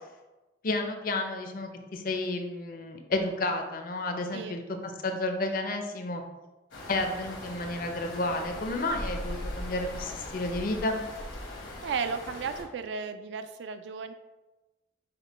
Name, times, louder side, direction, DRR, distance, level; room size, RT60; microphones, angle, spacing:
voice 1, 0.6-6.2 6.9-11.0, left 2 dB, 45° left, 4 dB, 0.5 m, -31 dB
sound 1, 6.7-12.6, left 1 dB, 80° left, 1.0 m, -39 dB
voice 2, 11.5-14.1, right 5 dB, 70° right, 10 dB, 0.3 m, -35 dB
5.1 x 2.2 x 4.0 m, 1.1 s
head